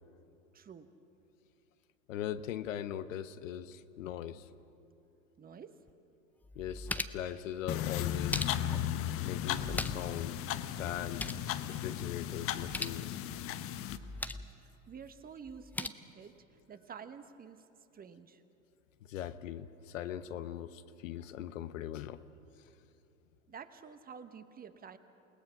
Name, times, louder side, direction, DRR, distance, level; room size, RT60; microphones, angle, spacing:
voice 1, 0.5-1.0 5.4-5.8 14.6-17.7 17.9-18.4 23.5-25.0, right 6 dB, 20° right, 10 dB, 1.1 m, -50 dB
voice 2, 2.1-4.5 6.6-8.5 9.2-10.4 10.7-11.3 11.7-13.2 19.0-22.2, left 10 dB, 65° left, 12 dB, 0.9 m, -40 dB
sound 1, 5.9-6.0 6.4-7.3 8.0-8.9 9.5-10.2 10.5-10.6 10.9-11.5 12.5-13.0 13.9-14.5 15.5-15.9, left 2 dB, 5° left, 0.4 m, -39 dB
sound 2, 7.7-14.0, left 11 dB, 35° left, 0.9 m, -36 dB
29.0 x 18.0 x 5.8 m, 2.9 s
figure-of-eight pair, 85°, 41 cm